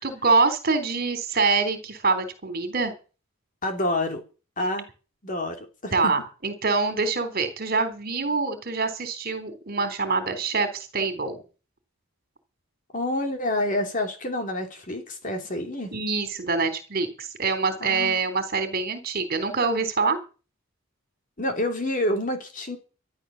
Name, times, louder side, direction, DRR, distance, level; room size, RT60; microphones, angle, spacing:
voice 1, 0.0-2.9 5.9-11.4 15.9-20.2, right 4 dB, 45° right, 3.6 m, -25 dB
voice 2, 3.6-4.2 4.6-4.9 5.2-6.1 12.9-15.9 17.8-18.2 21.4-22.8, left 1 dB, 40° left, 3.1 m, -28 dB
14.0 x 11.0 x 7.1 m
head